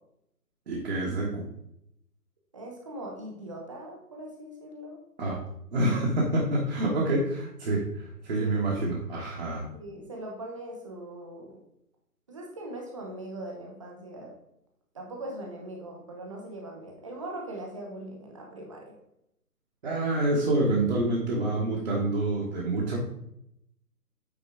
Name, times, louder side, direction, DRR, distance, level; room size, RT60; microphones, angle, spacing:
voice 1, 0.7-1.4 5.2-5.4 5.7-9.7 19.8-23.0, right 2 dB, 40° right, -4 dB, 1.5 m, -27 dB
voice 2, 2.5-5.0 8.4-8.6 9.7-11.6 12.3-14.3 14.9-18.9, right 1 dB, 20° right, 0 dB, 0.9 m, -40 dB
9.1 x 4.2 x 3.5 m, 0.76 s
figure-of-eight pair, 145°, 47 cm